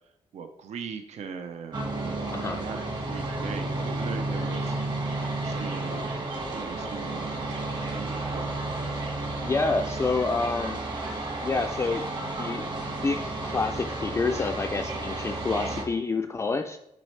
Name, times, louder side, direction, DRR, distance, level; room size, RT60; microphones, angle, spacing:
voice 1, 0.3-4.8 5.4-7.3 7.7-8.5, right 6 dB, 75° right, 6 dB, 0.6 m, -40 dB
sound 1, 1.7-15.8, right 2 dB, 40° right, 1.5 m, -32 dB
voice 2, 2.3-2.6 9.4-10.8 11.4-12.7 13.0-16.8, left 3 dB, 25° left, 4 dB, 0.3 m, -28 dB
9.3 x 4.2 x 3.2 m, 0.83 s
wide cardioid pair, 140°, 12 cm